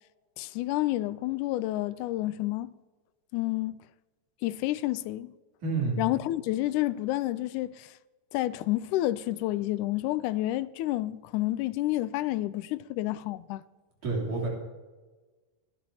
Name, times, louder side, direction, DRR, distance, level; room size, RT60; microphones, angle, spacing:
voice 1, 0.4-2.7 3.3-3.8 4.4-5.3 6.0-7.9 8.3-13.6, left 16 dB, 85° left, 2.0 m, -29 dB
voice 2, 5.6-6.0 14.0-14.5, right 3 dB, 80° right, 4.6 m, -28 dB
26.0 x 12.0 x 2.8 m
omnidirectional pair, 3.5 m